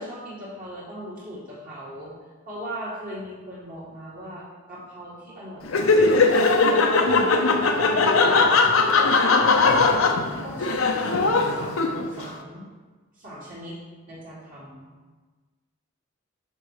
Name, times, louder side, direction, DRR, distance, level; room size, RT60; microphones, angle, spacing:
voice 1, 0.0-2.1 2.4-6.2 6.7-7.3 7.9-8.6 9.4-12.7 13.1-13.8 14.1-14.9, equal, 40° right, -7 dB, 2.1 m, -39 dB
Laughter, 5.6-12.2, left 3 dB, 80° left, 0.7 m, -19 dB
6.6 x 5.4 x 4.9 m, 1.3 s
head